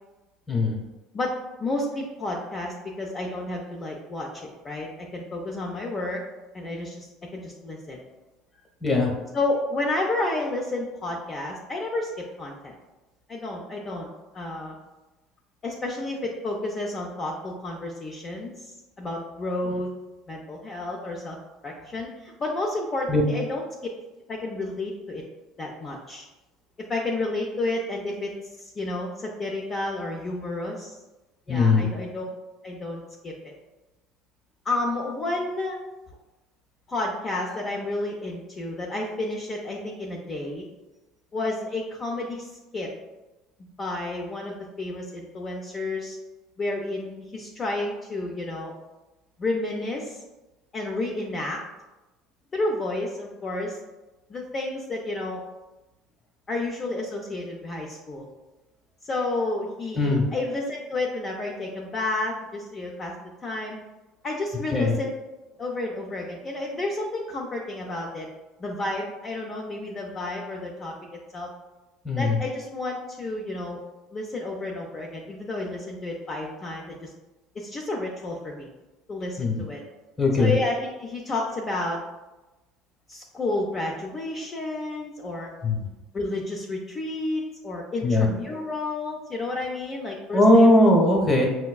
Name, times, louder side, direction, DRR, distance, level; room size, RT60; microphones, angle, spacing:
voice 1, 0.5-0.8 8.8-9.1 19.7-19.8 23.1-23.2 31.5-31.9 59.9-60.2 64.7-64.9 72.0-72.4 79.4-79.6 80.2-80.5 85.6-85.9 88.0-88.3 90.3-91.5, left 2 dB, 15° left, -1 dB, 1.0 m, -19 dB
voice 2, 1.6-6.2 6.5-8.0 9.3-12.8 13.3-14.1 14.3-14.8 15.6-19.9 20.3-21.4 21.6-23.6 24.3-25.2 25.6-26.2 26.9-28.3 28.6-31.0 31.5-32.2 32.6-33.5 34.6-35.8 36.9-40.7 41.3-42.9 43.6-46.2 46.6-48.7 49.4-50.2 50.7-51.6 52.5-53.8 54.3-55.4 56.5-58.3 59.0-63.1 63.4-63.8 64.2-65.1 65.6-68.3 68.6-70.9 71.3-71.5 72.2-73.8 74.1-77.1 77.5-78.7 79.1-79.8 80.4-82.0 83.1-85.5 86.1-90.7 91.1-91.2, left 2 dB, 30° left, -2 dB, 0.5 m, -31 dB
5.6 x 2.1 x 2.3 m, 1.1 s
supercardioid pair, 110°, 0 cm